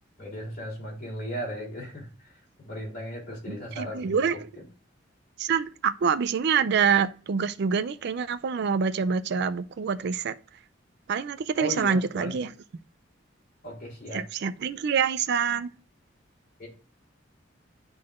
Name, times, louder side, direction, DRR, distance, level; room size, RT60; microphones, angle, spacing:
voice 1, 0.2-4.2 4.6-4.7 11.6-12.3 13.6-14.3 16.6-16.7, equal, 50° left, 3.6 m, -36 dB
voice 2, 3.5-4.4 5.4-10.3 11.1-12.5 14.1-15.7, right 6 dB, 60° right, 0.4 m, -26 dB
10.5 x 3.9 x 2.4 m
head